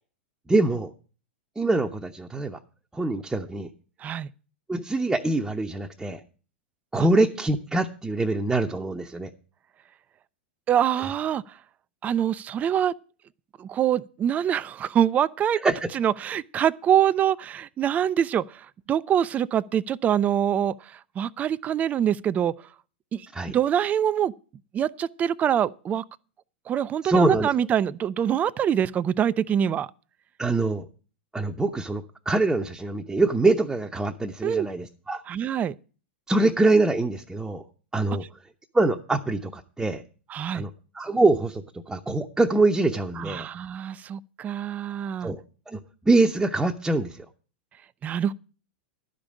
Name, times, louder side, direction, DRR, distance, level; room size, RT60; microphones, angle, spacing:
voice 1, 0.5-0.9 1.6-2.6 2.9-3.7 4.7-6.2 6.9-9.3 15.6-15.9 23.3-23.6 27.0-27.5 30.4-30.9 31.3-35.2 36.3-37.6 37.9-38.2 38.7-40.0 40.5-40.7 40.9-43.5 45.2-45.4 45.7-45.8 46.0-47.3, right 2 dB, 10° right, 0.9 m, -24 dB
voice 2, 10.7-11.4 12.0-12.9 13.6-22.5 23.1-23.3 23.5-24.3 24.7-26.0 26.7-29.9 34.4-34.7 35.3-35.7 40.3-40.6 43.2-45.3 48.0-48.3, right 9 dB, 25° right, 0.5 m, -25 dB
12.0 x 5.3 x 8.5 m
hypercardioid pair, 100°, 6 cm